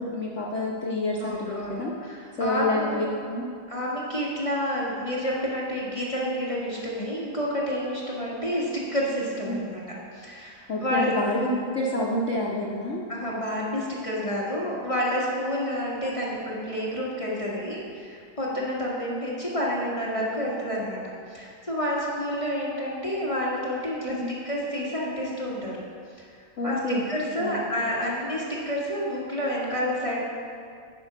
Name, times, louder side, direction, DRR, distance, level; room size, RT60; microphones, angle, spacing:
voice 1, 0.0-1.9 2.4-3.4 9.5-9.8 10.7-13.0 24.0-24.4 26.6-27.0 27.4-27.6, left 1 dB, 60° left, -4 dB, 0.7 m, -28 dB
voice 2, 1.2-3.1 3.7-9.8 10.1-11.5 13.1-21.0 21.3-24.2 24.4-25.7 26.2-26.3 26.6-26.8 27.1-30.2, equal, 20° left, -6 dB, 1.0 m, -29 dB
10.0 x 4.3 x 5.9 m, 2.3 s
omnidirectional pair, 2.3 m